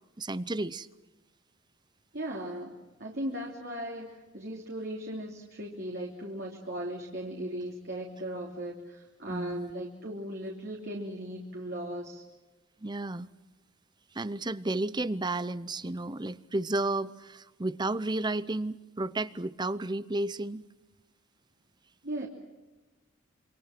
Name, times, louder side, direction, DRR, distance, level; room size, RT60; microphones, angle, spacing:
voice 1, 0.2-0.9 9.3-9.7 12.8-13.3 14.1-20.7, right 2 dB, 20° right, 16 dB, 0.7 m, -32 dB
voice 2, 2.1-12.2 22.0-22.3, right 1 dB, 55° right, -1 dB, 3.2 m, -37 dB
27.5 x 25.5 x 6.0 m, 1.2 s
head